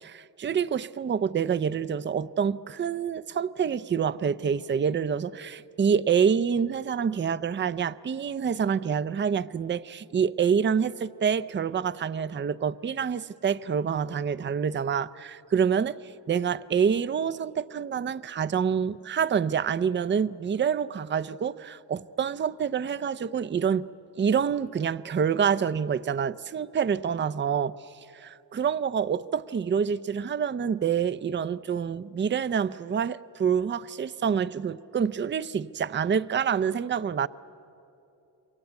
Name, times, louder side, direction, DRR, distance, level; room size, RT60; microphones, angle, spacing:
voice 1, 0.0-16.0 16.3-23.9 24.2-27.7 28.1-37.3, right 7 dB, 25° right, 15 dB, 0.5 m, -27 dB
28.0 x 23.5 x 8.1 m, 2.8 s
cardioid pair, 90°, 42 cm